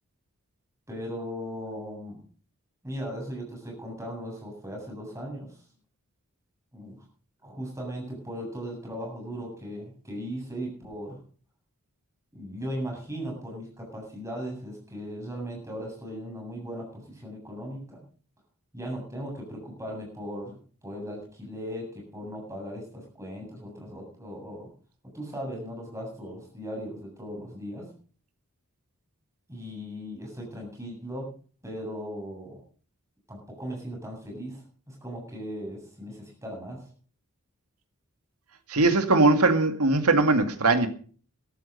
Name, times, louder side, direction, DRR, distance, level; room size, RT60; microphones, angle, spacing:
voice 1, 0.9-2.2 2.8-5.6 6.7-7.0 7.4-11.2 12.3-18.0 18.7-24.7 25.1-27.9 29.5-31.3 31.6-32.6 33.3-36.9, equal, 15° right, 0 dB, 7.6 m, -38 dB
voice 2, 38.7-40.9, right 2 dB, 85° right, 7 dB, 2.2 m, -20 dB
14.0 x 13.0 x 5.4 m, 0.43 s
head